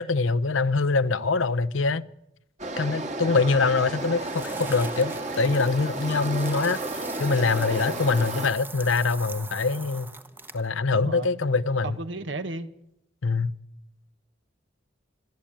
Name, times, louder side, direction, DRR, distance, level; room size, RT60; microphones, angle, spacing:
voice 1, 0.0-2.0 2.8-10.1 10.5-11.9 13.2-13.5, left 4 dB, 85° left, 0.8 m, -24 dB
sound 1, 2.6-8.5, right 1 dB, 40° right, 1.9 m, -32 dB
sound 2, 4.2-10.7, right 3 dB, 10° right, 0.9 m, -42 dB
voice 2, 10.9-11.5 11.8-12.7, right 2 dB, 65° right, 1.4 m, -35 dB
27.0 x 12.0 x 8.8 m
head